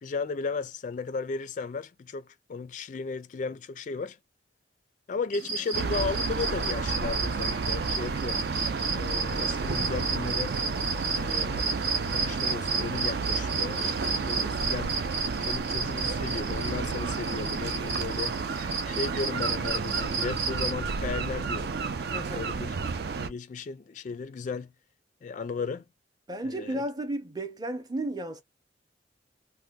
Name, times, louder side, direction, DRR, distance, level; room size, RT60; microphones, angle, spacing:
voice 1, 0.0-4.2 5.1-8.4 8.9-10.6 11.1-11.8 12.1-15.0 15.5-18.4 18.9-21.7 22.3-22.7 23.2-24.7 25.2-25.8 26.4-26.8, left 4 dB, 45° left, 0.3 m, -35 dB
sound 1, 5.3-20.7, right 4 dB, 80° right, 1.1 m, -33 dB
sound 2, 5.7-23.3, right 4 dB, 60° right, 0.4 m, -31 dB
voice 2, 11.2-11.6 22.1-22.7 26.3-28.4, right 1 dB, 20° right, 0.6 m, -34 dB
2.7 x 2.1 x 3.5 m
head